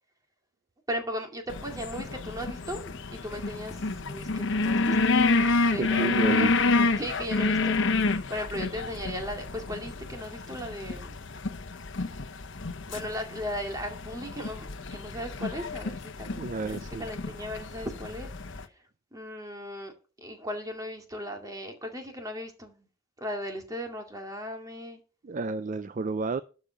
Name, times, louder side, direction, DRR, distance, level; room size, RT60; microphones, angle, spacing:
voice 1, 0.9-5.0 5.7-6.5 6.9-7.8 8.3-11.2 12.9-16.3 16.6-18.3 19.1-19.9 20.2-22.9 23.2-25.0, equal, 20° right, 2.2 m, -37 dB
sound 1, 1.5-18.6, left 3 dB, 65° left, 0.9 m, -29 dB
voice 2, 5.8-6.5 16.3-17.1 25.2-26.4, right 3 dB, 40° right, 0.4 m, -31 dB
12.0 x 5.2 x 6.3 m
head